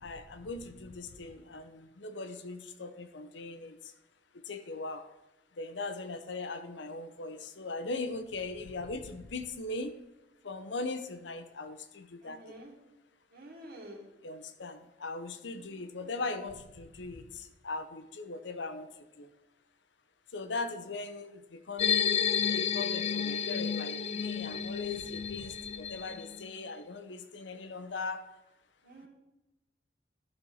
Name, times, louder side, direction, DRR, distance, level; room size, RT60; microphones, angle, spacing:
voice 1, 0.0-3.8 4.5-5.0 5.6-10.0 10.4-12.4 14.2-18.9 19.2-19.3 20.3-22.2 22.5-28.2, left 3 dB, 80° left, 9 dB, 0.8 m, -39 dB
voice 2, 12.2-12.7 13.3-14.0 15.4-16.1 28.8-29.1, right 1 dB, 55° right, -1 dB, 2.2 m, -50 dB
sound 1, 21.8-26.5, left 7 dB, 35° left, 0.3 m, -31 dB
12.0 x 4.3 x 6.3 m, 1.0 s
head